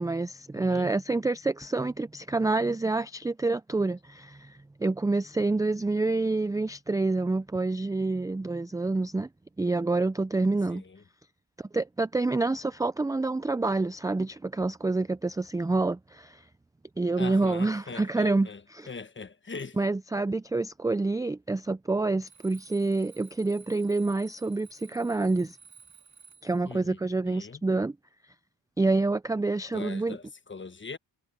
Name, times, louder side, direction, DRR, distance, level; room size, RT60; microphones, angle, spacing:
voice 1, 0.0-9.3 9.6-10.8 11.7-16.4 17.0-18.9 19.8-25.6 26.4-27.9 28.8-30.2, right 3 dB, 10° right, 0.4 m, -27 dB
voice 2, 0.5-0.9 10.7-11.0 17.2-18.6 18.9-19.8 26.7-27.0 27.3-27.6 29.7-31.0, left 4 dB, 25° left, 1.3 m, -41 dB
Alarm, 22.2-26.6, right 6 dB, 40° right, 3.0 m, -54 dB
cardioid pair, 70°, 43 cm